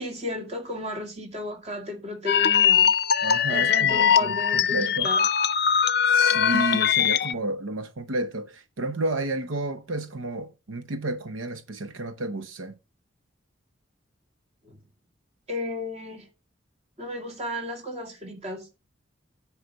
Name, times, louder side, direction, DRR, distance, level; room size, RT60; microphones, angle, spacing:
voice 1, 0.0-2.9 3.5-5.2 14.6-14.8 15.5-16.3 17.0-18.7, left 1 dB, 35° right, 2.3 m, -34 dB
sound 1, 2.3-7.3, left 8 dB, 55° left, 0.5 m, -21 dB
voice 2, 3.2-5.1 6.1-12.7, right 2 dB, 85° right, 0.8 m, -31 dB
9.5 x 4.9 x 6.3 m
head